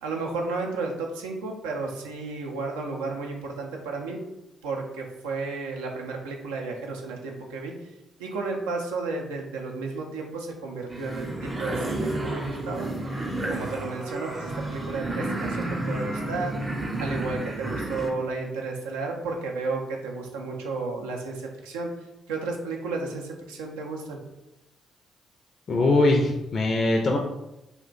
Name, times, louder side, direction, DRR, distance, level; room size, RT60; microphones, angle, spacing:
voice 1, 0.0-4.2 4.6-7.7 8.2-12.9 13.5-16.5 17.0-21.9 22.3-24.2, right 3 dB, 80° right, 1 dB, 0.4 m, -32 dB
sound 1, 10.9-18.1, right 2 dB, 35° right, 0.6 m, -31 dB
voice 2, 25.7-27.2, left 2 dB, 50° left, 1 dB, 0.4 m, -21 dB
2.4 x 2.1 x 3.7 m, 0.92 s
hypercardioid pair, 40°, 0 cm